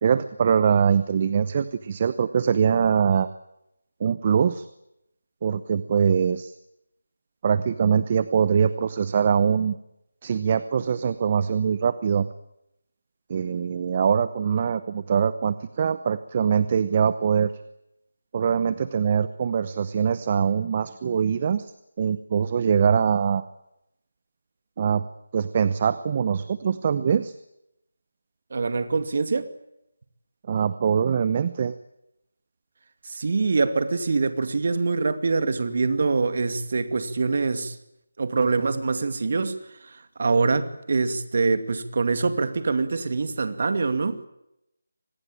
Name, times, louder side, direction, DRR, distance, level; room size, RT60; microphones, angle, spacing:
voice 1, 0.0-3.3 4.0-4.7 5.4-6.5 7.4-9.8 10.2-12.3 13.3-17.5 18.3-21.7 22.0-23.4 24.8-25.0 25.3-27.3 30.5-31.8, right 7 dB, 35° right, 0.9 m, -23 dB
voice 2, 28.5-29.5 33.0-37.8 38.2-44.2, right 4 dB, 50° right, 2.3 m, -24 dB
25.0 x 20.0 x 9.0 m
figure-of-eight pair, 165°, 0 cm